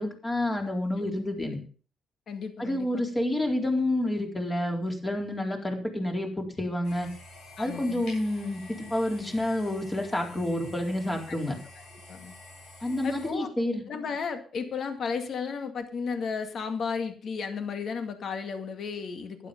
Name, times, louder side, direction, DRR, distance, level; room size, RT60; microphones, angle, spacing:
voice 1, 0.0-1.6 2.6-7.1 7.6-11.6 12.8-13.8, left 1 dB, 20° left, 2 dB, 4.1 m, -29 dB
voice 2, 2.3-3.0 7.6-8.0 11.3-11.4 12.1-12.3 13.0-13.5 13.9-19.5, left 5 dB, 60° left, 7 dB, 2.1 m, -34 dB
sound 1, 6.8-13.3, left 2 dB, 80° left, 7.4 m, -48 dB
12.0 x 11.0 x 5.3 m, 0.40 s
cardioid pair, 90°, 0 cm